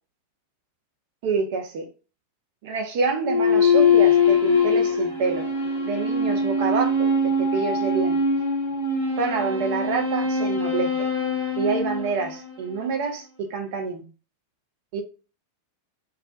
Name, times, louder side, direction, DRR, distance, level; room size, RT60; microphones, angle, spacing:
voice 1, 1.2-1.9 2.6-5.5 5.8-8.2 9.2-10.9 11.6-14.1 14.9-15.0, right 4 dB, 50° right, 0.7 m, -27 dB
sound 1, 3.2-12.8, left 4 dB, 85° right, 1.1 m, -22 dB
2.4 x 2.2 x 2.4 m
figure-of-eight pair, 90°, 0 cm